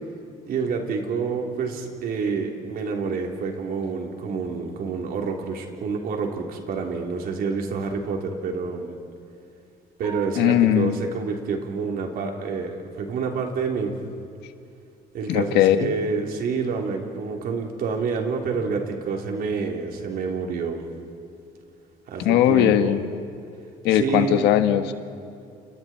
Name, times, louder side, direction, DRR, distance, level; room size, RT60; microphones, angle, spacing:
voice 1, 0.5-8.9 10.0-14.0 15.1-20.9 22.1-23.0 23.9-24.5, right 5 dB, 65° right, 1 dB, 3.8 m, -28 dB
sound 1, 10.0-11.1, right 9 dB, 30° right, 7.9 m, -41 dB
voice 2, 10.4-10.9 15.3-15.9 22.2-23.1 23.8-24.9, left 11 dB, 90° left, 8 dB, 1.5 m, -19 dB
30.0 x 29.5 x 4.6 m, 2.5 s
cardioid pair, 110°, 17 cm